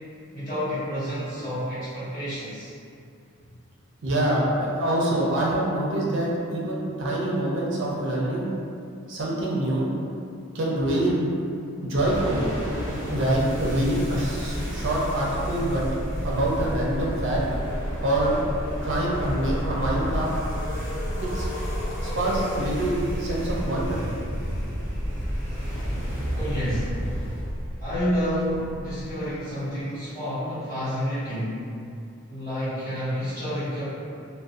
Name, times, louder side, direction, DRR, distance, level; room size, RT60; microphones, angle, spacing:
voice 1, 0.3-2.7 26.3-27.0 27.8-31.6 32.3-33.9, equal, 40° left, -15 dB, 1.2 m, -29 dB
voice 2, 4.0-8.5 9.1-9.9 10.5-11.2 11.8-12.4 13.1-15.8 16.2-17.4 18.0-18.4 18.8-20.3 21.3-21.5 22.0-24.0, right 1 dB, 55° right, -5 dB, 0.4 m, -25 dB
sound 1, 11.9-29.3, equal, 10° right, 0.6 m, -31 dB
sound 2, 18.8-22.7, left 2 dB, 60° left, 0.3 m, -38 dB
2.4 x 2.1 x 2.4 m, 2.5 s
head